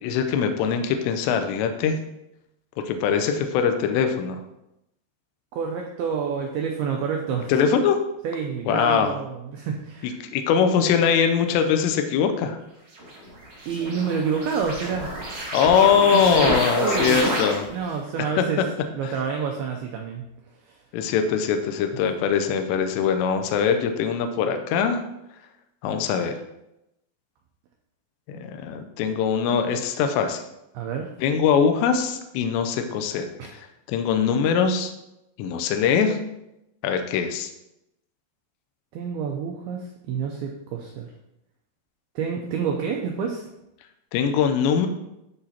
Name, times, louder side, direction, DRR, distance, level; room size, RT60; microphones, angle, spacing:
voice 1, 0.0-2.0 2.8-4.4 7.5-8.0 8.7-9.1 10.3-12.6 15.5-17.7 18.4-18.5 19.1-19.2 20.9-25.0 25.8-26.4 28.3-30.4 31.2-33.3 33.5-34.9 35.4-36.2 36.8-37.5 44.1-44.9, left 7 dB, 85° left, 6 dB, 2.8 m, -22 dB
voice 2, 5.5-7.5 8.2-10.2 13.7-15.1 16.1-17.2 17.7-18.6 18.9-20.2 20.7-20.8 30.7-31.1 33.4-33.5 38.9-41.1 42.2-43.4, right 6 dB, 80° right, 1 dB, 2.2 m, -28 dB
sound 1, 13.0-17.9, right 1 dB, 45° right, 3.2 m, -28 dB
13.0 x 4.9 x 2.8 m, 0.87 s
omnidirectional pair, 5.1 m